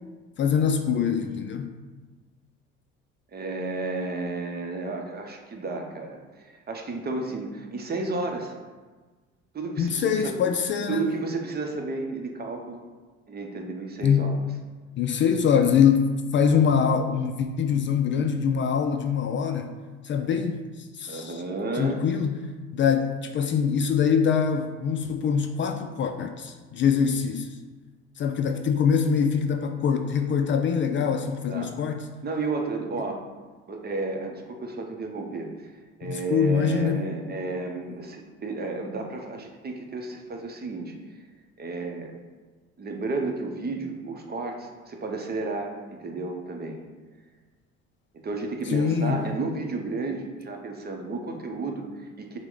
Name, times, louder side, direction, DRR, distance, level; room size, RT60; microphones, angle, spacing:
voice 1, 0.4-1.7 9.8-11.0 14.0-14.3 15.0-19.8 20.0-20.7 21.0-21.4 21.8-22.4 22.7-27.5 28.2-32.1 36.0-37.0 48.7-49.2, left 7 dB, 40° left, 6 dB, 0.4 m, -24 dB
voice 2, 3.3-8.5 9.5-10.4 10.9-12.8 13.3-14.4 21.1-22.0 31.5-31.8 32.2-33.2 33.7-35.7 36.0-41.0 41.6-42.1 42.8-46.8 48.2-52.4, right 3 dB, 30° right, 3 dB, 0.8 m, -32 dB
5.8 x 2.2 x 3.8 m, 1.3 s
supercardioid pair, 70°, 30 cm